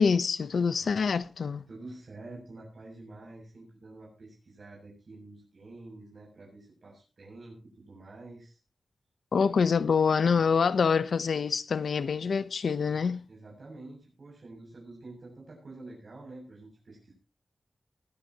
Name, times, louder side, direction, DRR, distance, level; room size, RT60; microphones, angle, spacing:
voice 1, 0.0-1.6 9.3-13.2, left 5 dB, 85° left, 0.9 m, -25 dB
voice 2, 1.7-8.6 13.3-17.1, right 2 dB, 65° right, 7.4 m, -48 dB
21.5 x 13.0 x 3.0 m
wide cardioid pair, 90°, 0 cm